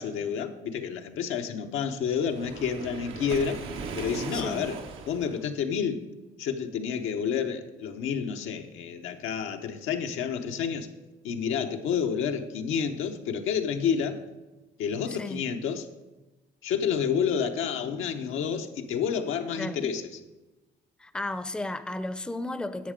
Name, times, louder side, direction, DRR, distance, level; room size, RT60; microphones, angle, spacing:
voice 1, 0.0-3.6 4.0-4.8 5.1-6.0 6.4-10.9 11.2-14.2 14.8-15.9 16.6-20.2, left 7 dB, 85° left, 0.9 m, -29 dB
Waves surf, 2.1-5.4, right 5 dB, 90° right, 1.1 m, -38 dB
voice 2, 4.3-4.6 15.1-15.4 19.6-19.8 21.0-22.9, left 2 dB, 5° left, 0.5 m, -34 dB
10.5 x 6.6 x 5.1 m
cardioid pair, 90°, 20 cm